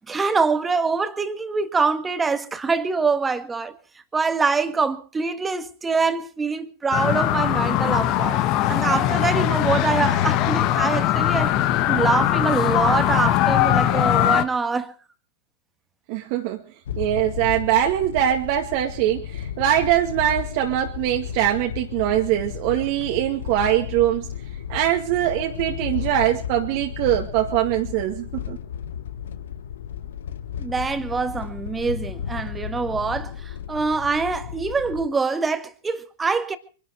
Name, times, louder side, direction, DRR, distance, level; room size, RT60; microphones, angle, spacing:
voice 1, 0.1-3.7 4.1-8.4 8.7-11.6 11.9-14.9 30.6-36.6, right 4 dB, 15° right, 1.7 m, -24 dB
sound 1, 6.9-14.4, left 12 dB, 45° left, 1.4 m, -20 dB
voice 2, 16.1-16.6 17.0-24.3 24.7-28.6, right 12 dB, 50° right, 2.1 m, -22 dB
sound 2, 16.9-35.1, left 9 dB, 70° left, 1.1 m, -34 dB
24.0 x 12.0 x 4.8 m
hypercardioid pair, 115°, 0 cm